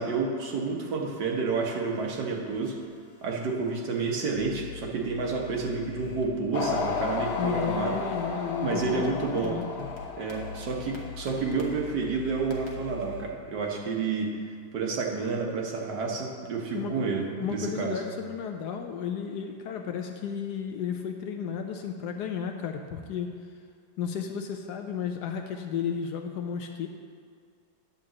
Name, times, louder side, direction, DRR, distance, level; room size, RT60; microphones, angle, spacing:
voice 1, 0.0-2.8 3.2-8.0 8.6-9.6 10.2-14.3 14.7-18.0, right 4 dB, 70° right, 0 dB, 1.6 m, -30 dB
sound 1, 1.6-6.3 6.6-13.2, left 6 dB, 45° left, 1.2 m, -43 dB
sound 2, 6.5-11.2, left 4 dB, 90° left, 0.5 m, -33 dB
voice 2, 7.4-9.9 16.7-17.1 17.4-23.3 24.0-26.9, left 7 dB, 70° left, 4 dB, 1.1 m, -33 dB
9.9 x 4.0 x 7.4 m, 2.1 s
omnidirectional pair, 2.0 m